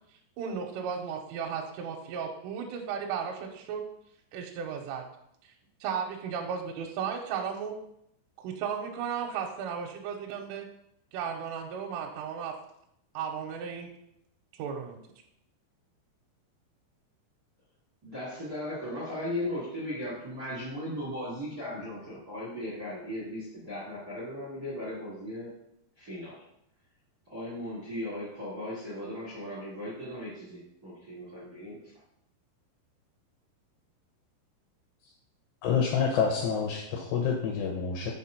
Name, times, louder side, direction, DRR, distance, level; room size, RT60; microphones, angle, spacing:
voice 1, 0.4-3.8 4.3-5.0 5.4-5.5 5.8-7.7 8.4-10.7 11.1-12.5 13.1-13.9 14.5-15.0, right 7 dB, 85° right, 1 dB, 3.2 m, -35 dB
voice 2, 18.0-25.5 26.0-26.4 27.3-31.9, left 1 dB, 65° right, -4 dB, 0.9 m, -37 dB
voice 3, 35.6-38.1, left 6 dB, 80° left, 1 dB, 2.4 m, -28 dB
7.4 x 4.3 x 5.5 m, 0.76 s
omnidirectional pair, 5.7 m